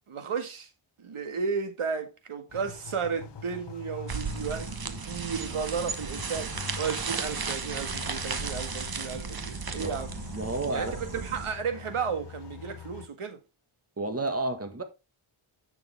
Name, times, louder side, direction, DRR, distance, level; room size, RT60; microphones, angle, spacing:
voice 1, 0.1-0.7 1.0-10.1 10.7-13.4, right 6 dB, 80° right, 1.8 m, -33 dB
sound 1, 2.5-13.1, left 7 dB, 55° left, 0.9 m, -44 dB
sound 2, 4.1-11.5, right 5 dB, 45° right, 1.3 m, -35 dB
voice 2, 10.3-11.0 14.0-14.8, right 2 dB, 30° right, 1.8 m, -31 dB
10.5 x 7.0 x 3.5 m
wide cardioid pair, 125°, 50 cm